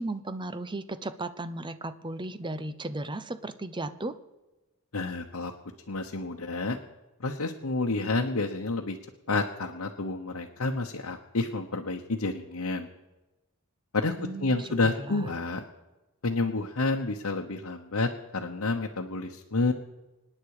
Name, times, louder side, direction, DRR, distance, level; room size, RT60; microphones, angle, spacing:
voice 1, 0.0-4.2 14.2-15.3, right 2 dB, 20° right, 12 dB, 0.8 m, -35 dB
voice 2, 4.9-5.5 5.9-6.8 7.2-9.0 9.3-12.9 13.9-15.6 16.2-19.7, left 3 dB, 80° left, 1 dB, 1.1 m, -29 dB
25.5 x 9.8 x 4.9 m, 1.1 s
head